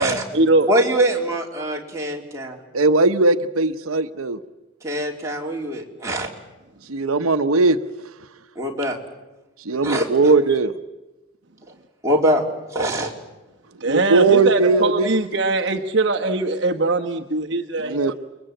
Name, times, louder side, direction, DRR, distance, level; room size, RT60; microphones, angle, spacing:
voice 1, 0.0-0.7 13.8-18.1, right 2 dB, 55° right, 3 dB, 1.2 m, -21 dB
voice 2, 0.7-2.6 4.8-6.3 8.6-9.0 9.8-10.1 12.0-12.5 12.7-13.1, right 1 dB, 15° right, -2 dB, 3.6 m, -23 dB
voice 3, 2.7-4.4 6.9-7.8 9.7-10.7 13.8-15.2 17.8-18.1, right 3 dB, 90° right, 9 dB, 0.9 m, -18 dB
29.5 x 22.0 x 9.1 m, 1.1 s
head